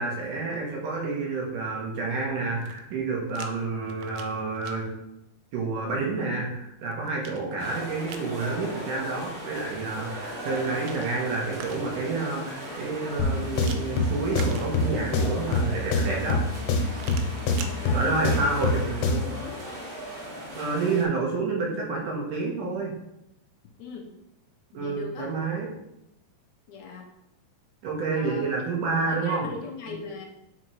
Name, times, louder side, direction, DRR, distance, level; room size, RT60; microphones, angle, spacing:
voice 1, 0.0-4.9 5.5-16.4 17.9-19.3 20.5-22.9 24.7-25.7 27.8-29.5 29.9-30.0, right 3 dB, 65° right, -2 dB, 3.0 m, -29 dB
sound 1, 2.5-3.5 3.8-4.8 6.5-8.3 10.3-12.1 13.6-15.2 16.9-17.8, right 7 dB, 90° right, 2.5 m, -44 dB
sound 2, 7.6-21.0, equal, 35° right, 3.0 m, -38 dB
sound 3, 13.2-19.4, left 3 dB, 85° left, 2.9 m, -26 dB
voice 2, 17.5-18.6 19.3-19.7 23.8-24.2 24.7-25.3 26.7-27.1 28.1-28.5 29.1-30.3, left 4 dB, 70° left, 1 dB, 1.8 m, -39 dB
9.1 x 4.8 x 4.6 m, 0.85 s
omnidirectional pair, 4.1 m